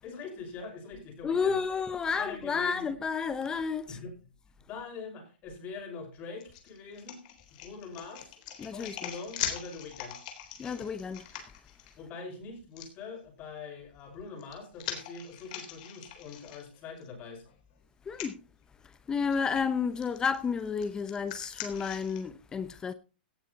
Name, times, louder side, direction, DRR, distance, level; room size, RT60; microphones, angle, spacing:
voice 1, 0.0-1.6 2.1-2.8 3.9-4.1 4.7-7.2 7.6-8.4 8.7-10.2 12.0-17.4, left 4 dB, 30° left, 5.7 m, -43 dB
voice 2, 1.2-4.0 8.6-9.1 10.6-11.5 18.0-18.4 18.8-22.9, left 6 dB, 15° left, 0.8 m, -31 dB
sound 1, 6.4-11.9 12.8-12.9 14.1-17.1 17.5-17.6 18.1-18.3 19.3-19.6 20.0-22.2, left 10 dB, 45° left, 3.8 m, -41 dB
17.0 x 9.9 x 4.1 m
hypercardioid pair, 150°, 6 cm